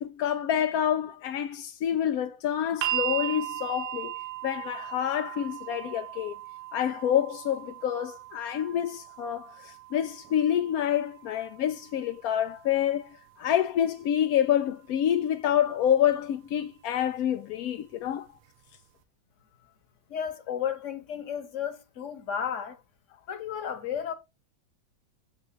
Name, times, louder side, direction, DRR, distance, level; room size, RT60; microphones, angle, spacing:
voice 1, 0.0-4.1 4.4-6.3 6.7-18.3 20.5-20.6, left 10 dB, 75° left, 0.8 m, -27 dB
sound 1, 2.8-14.9 16.0-16.1, right 14 dB, 75° right, 1.2 m, -38 dB
voice 2, 20.1-22.8 23.3-24.1, left 8 dB, 45° left, 1.2 m, -33 dB
7.9 x 3.2 x 6.2 m
omnidirectional pair, 2.1 m